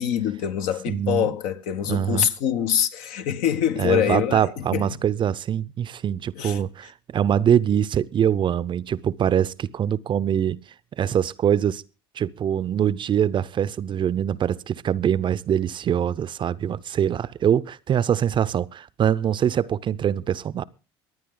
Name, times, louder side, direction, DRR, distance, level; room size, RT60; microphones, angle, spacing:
voice 1, 0.0-5.0 6.4-6.6, left 9 dB, 65° left, 1.3 m, -25 dB
voice 2, 0.9-1.3 1.9-2.3 3.8-10.6 11.0-11.8 12.2-20.6, right 9 dB, 35° right, 0.6 m, -23 dB
23.5 x 9.5 x 3.8 m
hypercardioid pair, 80°, 14 cm